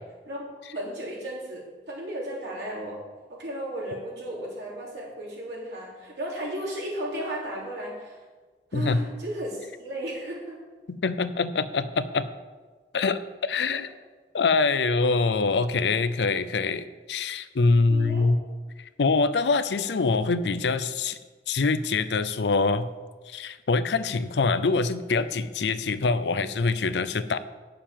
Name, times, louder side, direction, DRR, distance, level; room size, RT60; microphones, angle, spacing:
voice 1, 0.7-3.0 3.3-8.2 8.7-10.6 17.9-18.3, equal, 85° right, -4 dB, 3.5 m, -34 dB
voice 2, 10.9-12.3 12.9-13.9 14.3-18.4 18.8-21.2 21.5-22.9 23.3-27.4, left 4 dB, 85° left, 13 dB, 0.5 m, -24 dB
9.0 x 6.7 x 7.3 m, 1.4 s
head